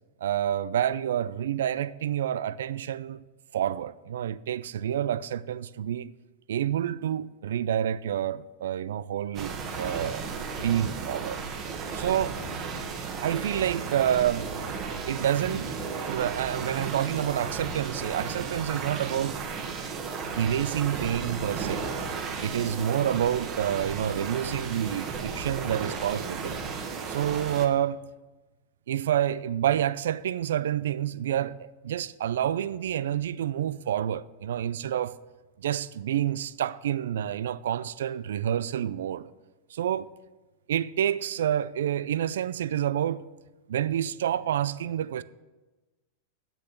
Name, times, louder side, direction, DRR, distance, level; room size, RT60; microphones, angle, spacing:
voice 1, 0.2-3.2 3.5-6.1 6.5-11.4 11.9-12.4 13.2-14.5 15.1-19.4 20.4-21.9 22.4-26.6 27.1-28.0 28.9-35.2 35.6-39.3 39.7-40.1 40.7-43.3 43.7-45.2, right 10 dB, 80° right, 0.3 m, -28 dB
sound 1, 9.3-27.7, right 5 dB, 35° right, 1.3 m, -34 dB
7.9 x 6.7 x 7.5 m
hypercardioid pair, 120°, 0 cm